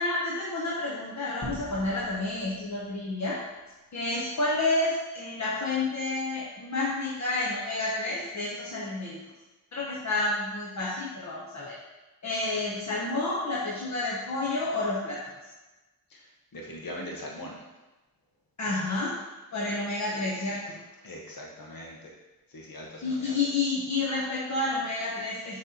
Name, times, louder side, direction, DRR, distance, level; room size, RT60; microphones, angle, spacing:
voice 1, 0.0-3.4 3.9-9.2 9.7-11.8 12.2-15.3 18.6-19.2 19.5-20.8 23.0-25.6, left 2 dB, 50° left, -6 dB, 1.2 m, -30 dB
sound 1, 1.4-4.0, equal, 35° left, 2.0 m, -44 dB
voice 2, 16.1-17.6 21.0-22.1 22.5-23.4, left 1 dB, 65° left, -1 dB, 1.4 m, -41 dB
6.5 x 3.4 x 4.4 m, 1.1 s
cardioid pair, 80°, 36 cm